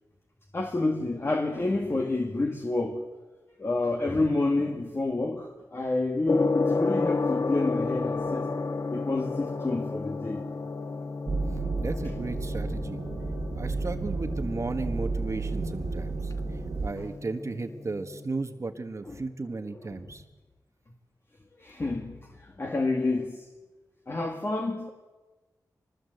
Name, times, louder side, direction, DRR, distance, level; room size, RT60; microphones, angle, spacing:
voice 1, 0.5-3.1 3.6-8.5 8.9-10.4 17.0-17.1 19.1-19.2 19.7-20.0 21.6-23.5 24.1-24.9, left 2 dB, 35° left, 2.1 m, -29 dB
Gong, 6.3-18.2, left 3 dB, 50° left, 1.4 m, -32 dB
sound 1, 11.3-16.9, right 3 dB, 65° right, 2.1 m, -32 dB
voice 2, 11.8-13.0 13.5-16.3 16.8-20.2, right 3 dB, 45° right, 1.5 m, -35 dB
23.5 x 20.5 x 8.0 m
wide cardioid pair, 85°, 7 cm